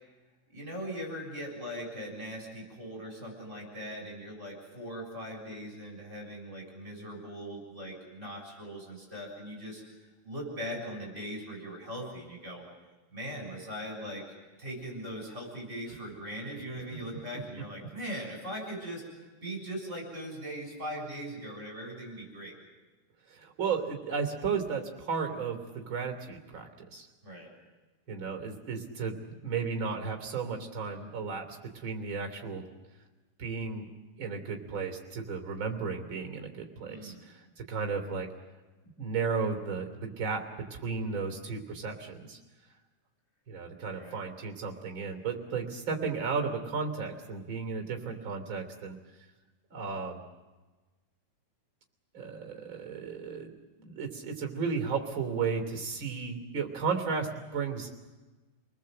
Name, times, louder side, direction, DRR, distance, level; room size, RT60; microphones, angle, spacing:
voice 1, 0.5-12.6 13.1-14.2 14.6-22.6 27.2-27.5 36.9-37.3 43.9-44.2, equal, 15° right, 0 dB, 7.0 m, -40 dB
voice 2, 23.3-27.1 28.1-32.7 33.4-38.3 39.0-42.4 43.5-49.0 49.7-50.2 52.1-53.5 53.8-58.0, right 5 dB, 30° right, 4 dB, 3.0 m, -34 dB
29.5 x 20.5 x 7.8 m, 1.2 s
omnidirectional pair, 5.6 m